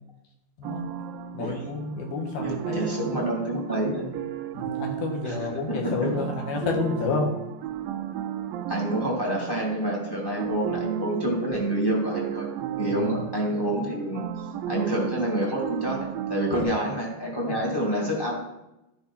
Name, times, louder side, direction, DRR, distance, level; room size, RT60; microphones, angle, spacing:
sound 1, 0.6-16.6, right 10 dB, 85° right, 2.0 m, -34 dB
voice 1, 1.3-3.2 4.5-7.3 12.9-13.0 17.5-17.6, left 4 dB, 70° left, 1 dB, 3.3 m, -30 dB
voice 2, 2.4-4.1 5.2-6.1 8.7-12.5 12.8-14.2 14.7-18.3, right 1 dB, 15° left, -4 dB, 0.8 m, -28 dB
12.5 x 5.0 x 5.4 m, 0.92 s
omnidirectional pair, 4.8 m